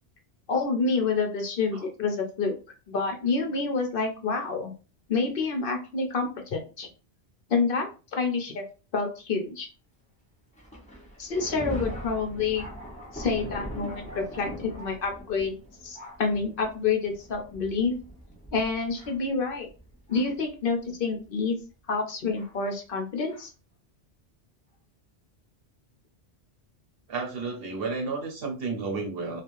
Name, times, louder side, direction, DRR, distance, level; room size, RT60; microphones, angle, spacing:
voice 1, 0.5-2.5 2.9-4.7 5.1-6.9 7.5-8.6 8.9-9.7 11.2-12.6 13.1-17.9 18.5-19.7 20.1-21.5 21.9-23.5, left 4 dB, 60° left, 4 dB, 0.8 m, -28 dB
Thunder, 10.6-20.5 21.2-21.3 22.4-22.5 23.3-23.4, right 1 dB, 5° left, 0.8 m, -41 dB
voice 2, 27.1-29.4, right 4 dB, 60° right, 2 dB, 1.0 m, -32 dB
3.2 x 2.4 x 2.5 m, 0.33 s
omnidirectional pair, 1.1 m